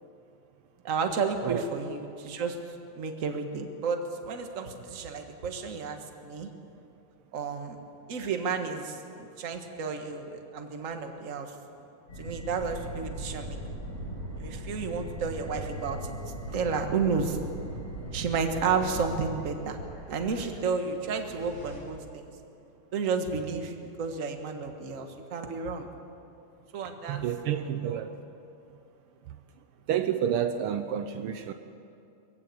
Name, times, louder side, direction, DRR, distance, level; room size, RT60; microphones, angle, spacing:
voice 1, 0.8-2.6 3.0-6.5 7.3-7.8 8.1-11.5 12.2-13.6 14.4-16.2 16.5-17.4 18.1-19.8 20.1-22.3 22.9-25.9 26.7-27.3 27.6-28.0, right 5 dB, 40° right, 5 dB, 1.3 m, -32 dB
sound 1, 12.1-21.8, equal, 55° left, 6.0 m, -39 dB
voice 2, 27.1-28.1 29.9-31.5, right 9 dB, 85° right, 8 dB, 1.2 m, -29 dB
22.5 x 15.5 x 8.5 m, 2.6 s
omnidirectional pair, 3.4 m